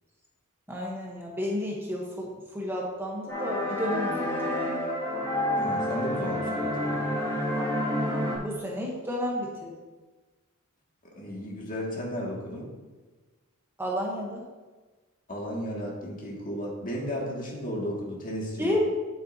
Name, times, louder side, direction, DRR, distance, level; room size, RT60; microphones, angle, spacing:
voice 1, 0.7-4.7 8.4-9.8 13.8-14.4 18.6-18.8, left 1 dB, 10° right, -2 dB, 1.0 m, -32 dB
sound 1, 3.3-8.4, left 1 dB, 10° left, 2.1 m, -29 dB
voice 2, 5.6-7.0 11.1-12.7 15.3-18.8, equal, 40° left, -3 dB, 2.0 m, -34 dB
9.7 x 7.7 x 2.8 m, 1.3 s
head